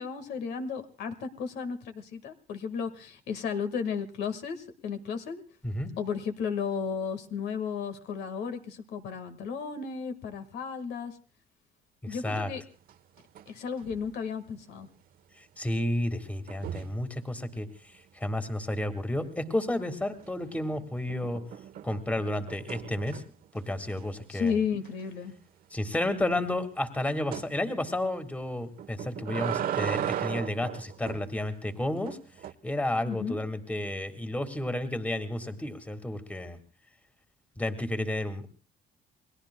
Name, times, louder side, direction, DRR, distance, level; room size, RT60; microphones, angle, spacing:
voice 1, 0.0-5.4 6.0-11.2 12.0-12.6 13.5-14.9 24.3-25.3 33.1-33.4, left 6 dB, 80° left, 8 dB, 1.7 m, -34 dB
voice 2, 12.0-12.5 15.6-21.4 21.8-23.2 23.5-24.5 25.7-32.2 32.6-36.6 37.6-38.5, left 1 dB, 10° left, 7 dB, 1.9 m, -31 dB
sound 1, 12.9-13.5 13.8-14.1 16.5-17.0 20.1-20.6 21.1-23.5 23.9-24.0 24.4-24.5 24.8-24.9 27.3-27.5 28.8-31.3 32.0-32.5, right 10 dB, 60° right, 1.0 m, -36 dB
29.5 x 21.0 x 2.2 m, 0.38 s
cardioid pair, 110°, 17 cm